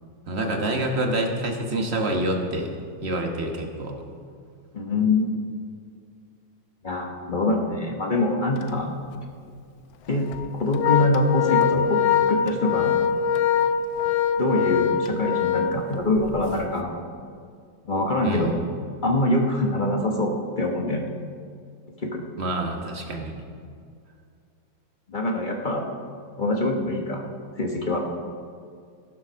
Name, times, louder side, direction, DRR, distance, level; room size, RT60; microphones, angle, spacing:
voice 1, 0.3-2.7 3.0-3.9 18.2-18.5 22.4-23.4, right 1 dB, 35° right, 2 dB, 1.3 m, -27 dB
voice 2, 4.7-5.3 6.8-8.9 10.1-12.0 12.3-13.0 14.4-16.9 17.9-18.6 19.0-21.0 22.0-22.2 25.1-25.9 26.4-27.2 27.6-28.0, left 2 dB, 35° left, 1 dB, 0.8 m, -24 dB
Organ, 8.6-8.8 9.2-9.3 10.1-16.4, left 8 dB, 75° left, 1.4 m, -23 dB
15.0 x 7.2 x 6.2 m, 2.3 s
omnidirectional pair, 2.3 m